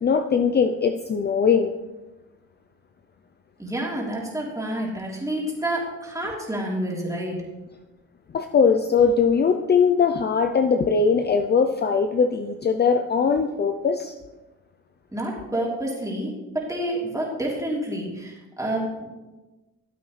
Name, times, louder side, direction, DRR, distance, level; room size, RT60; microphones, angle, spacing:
voice 1, 0.0-1.7 8.3-14.1, left 5 dB, 35° left, 7 dB, 0.6 m, -20 dB
voice 2, 3.6-7.3 15.1-19.1, right 1 dB, 10° right, -3 dB, 3.3 m, -29 dB
13.5 x 8.3 x 3.3 m, 1.1 s
cardioid pair, 90°, 30 cm